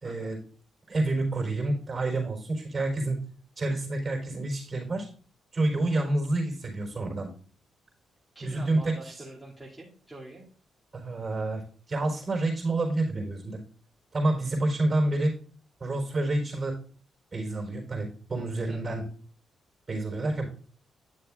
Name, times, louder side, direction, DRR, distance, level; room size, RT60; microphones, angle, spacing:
voice 1, 0.0-0.4 0.9-3.2 3.6-5.1 5.5-7.3 8.4-9.2 10.9-13.6 14.1-15.3 15.8-16.8 17.3-19.1 19.9-20.5, right 2 dB, 30° right, 1 dB, 4.1 m, -28 dB
voice 2, 8.3-10.4 18.7-19.0, right 2 dB, 5° right, -7 dB, 2.5 m, -45 dB
10.5 x 6.7 x 2.5 m, 0.43 s
cardioid pair, 90°, 0 cm